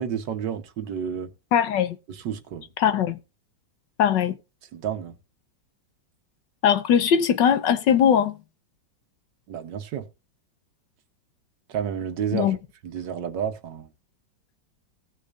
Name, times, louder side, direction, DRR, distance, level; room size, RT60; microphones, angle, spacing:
voice 1, 0.0-1.3 2.1-2.7 4.7-5.2 9.5-10.1 11.7-12.6 12.8-13.9, right 8 dB, 70° right, 1.6 m, -30 dB
voice 2, 1.5-2.0 2.8-3.2 4.0-4.4 6.6-8.4 12.3-12.6, left 8 dB, 70° left, 1.5 m, -20 dB
17.5 x 6.7 x 2.5 m
omnidirectional pair, 2.0 m